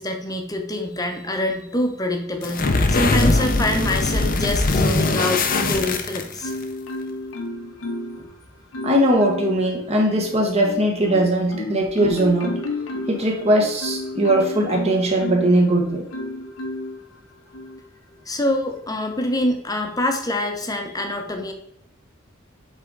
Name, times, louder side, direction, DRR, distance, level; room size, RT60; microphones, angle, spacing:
voice 1, 0.0-6.5 8.2-8.3 18.3-21.5, left 1 dB, 20° left, 4 dB, 0.9 m, -25 dB
sound 1, 2.4-6.6, left 2 dB, 45° left, 0.7 m, -21 dB
Marimba xylophone, 5.0-6.0 6.4-8.2 8.7-9.6 10.1-15.6 16.1-17.0 17.5-17.8, left 2 dB, 80° left, 1.1 m, -31 dB
voice 2, 8.8-12.5 13.1-16.0, right 1 dB, 30° right, 1 dB, 1.4 m, -20 dB
7.8 x 3.8 x 3.9 m, 0.74 s
head